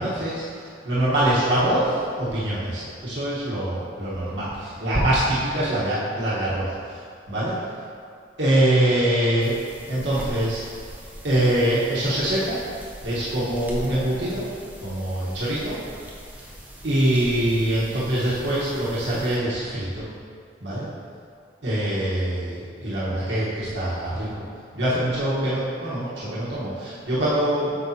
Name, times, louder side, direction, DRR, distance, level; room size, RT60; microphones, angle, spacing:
voice 1, 0.0-7.6 8.4-9.6 9.9-10.6 11.2-12.6 13.0-14.5 14.8-15.8 16.4-16.5 16.8-20.1 20.6-20.8 21.6-24.4 24.7-27.7, right 1 dB, 85° right, -10 dB, 1.3 m, -24 dB
sound 1, 9.4-19.4, equal, 10° right, 0.8 m, -41 dB
8.1 x 5.3 x 2.8 m, 2.3 s
head